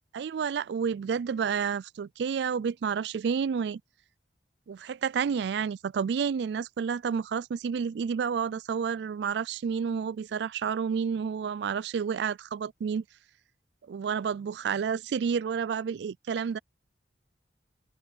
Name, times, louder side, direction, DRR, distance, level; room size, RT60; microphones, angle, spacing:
voice 1, 0.1-3.8 4.7-13.0 13.9-16.6, right 6 dB, 65° right, 0.3 m, -30 dB
open air
head